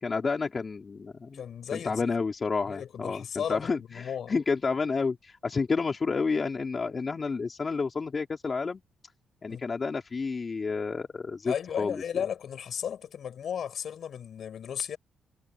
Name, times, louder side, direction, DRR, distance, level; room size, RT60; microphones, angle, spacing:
voice 1, 0.0-1.4 1.7-3.2 3.5-8.8 9.4-12.0, left 4 dB, 35° left, 3.6 m, -30 dB
voice 2, 1.3-2.1 2.7-4.4 9.5-9.6 11.4-15.0, left 8 dB, 60° left, 7.0 m, -35 dB
cardioid pair, 90°, 0 cm